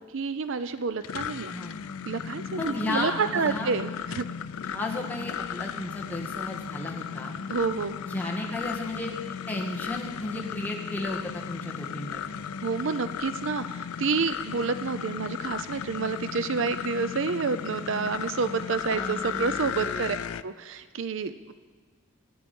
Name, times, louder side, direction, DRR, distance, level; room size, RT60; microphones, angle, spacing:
voice 1, 0.0-1.5 2.1-4.3 7.5-8.0 12.6-20.2 20.4-21.5, right 5 dB, 60° right, 12 dB, 0.5 m, -29 dB
sound 1, 0.8-20.4, left 7 dB, 80° left, 0.4 m, -35 dB
voice 2, 1.5-1.8 2.5-3.7 4.7-7.3 8.0-9.1 9.5-12.2 18.9-20.1, left 1 dB, 10° left, -2 dB, 1.8 m, -34 dB
25.5 x 8.5 x 5.4 m, 1.5 s
head